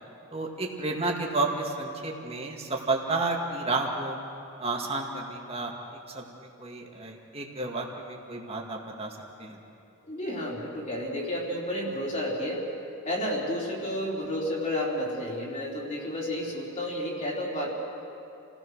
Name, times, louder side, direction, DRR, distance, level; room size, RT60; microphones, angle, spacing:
voice 1, 0.3-4.2 4.6-9.6, right 3 dB, 30° right, 0 dB, 2.2 m, -31 dB
voice 2, 10.0-12.7 13.1-17.7, left 1 dB, 35° left, -4 dB, 4.1 m, -31 dB
29.0 x 17.0 x 6.4 m, 2.7 s
head